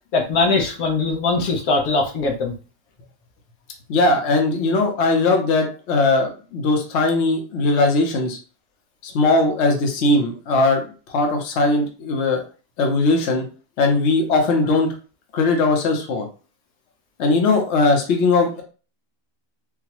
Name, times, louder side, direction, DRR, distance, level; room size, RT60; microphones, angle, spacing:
voice 1, 0.1-2.5, left 3 dB, 85° left, 1 dB, 1.3 m, -21 dB
voice 2, 3.9-8.4 9.1-10.8 11.1-12.4 12.8-13.4 13.8-14.9 15.3-16.3 17.2-18.6, left 3 dB, 60° left, 2 dB, 1.0 m, -19 dB
3.9 x 2.1 x 2.9 m, 0.36 s
omnidirectional pair, 1.5 m